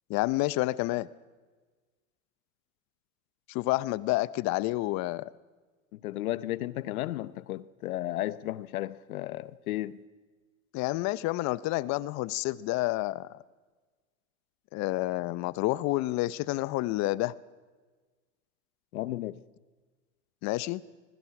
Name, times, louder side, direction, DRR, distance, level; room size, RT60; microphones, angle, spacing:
voice 1, 0.1-1.1 3.5-5.3 10.7-13.3 14.7-17.3 20.4-20.8, left 18 dB, 40° left, 0.8 m, -29 dB
voice 2, 5.9-10.0 18.9-19.4, left 15 dB, 80° left, 0.9 m, -34 dB
27.0 x 20.5 x 6.0 m
supercardioid pair, 120°, 42 cm